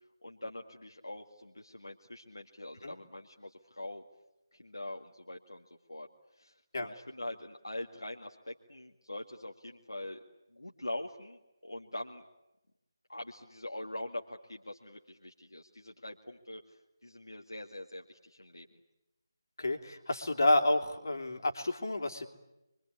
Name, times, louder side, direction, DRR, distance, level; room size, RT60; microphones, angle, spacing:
voice 1, 0.2-4.0 4.5-6.1 6.4-10.2 10.5-12.2 13.1-18.8, left 1 dB, 75° left, 1 dB, 2.1 m, -43 dB
voice 2, 19.6-22.3, left 1 dB, 55° left, 4 dB, 3.2 m, -29 dB
27.5 x 24.0 x 8.5 m, 0.93 s
figure-of-eight pair, 155°, 2 cm